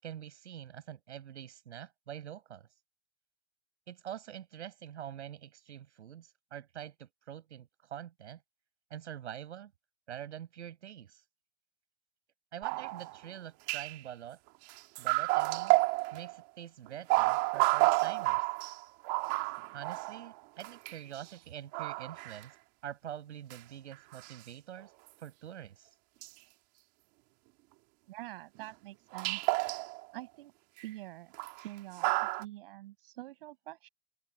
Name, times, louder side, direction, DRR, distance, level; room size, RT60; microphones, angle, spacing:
voice 1, 0.0-2.7 3.9-8.4 8.9-9.7 10.1-11.2 12.5-14.4 15.0-15.8 16.1-18.5 19.7-22.6 22.8-24.9 25.2-25.9, right 10 dB, 85° right, 7.6 m, -45 dB
sound 1, 12.6-13.2 13.7-14.0 14.7-16.4 16.9-21.0 21.7-22.4 23.5-23.6 23.9-24.3 24.8-24.9 26.2-26.3 28.6-28.7 29.1-30.1 30.8-30.9 31.3-31.6 32.0-32.4, right 24 dB, 35° right, 2.3 m, -30 dB
voice 2, 28.1-29.4 30.1-30.5 30.8-33.9, right 16 dB, 55° right, 6.9 m, -46 dB
open air
supercardioid pair, 160°, 34 cm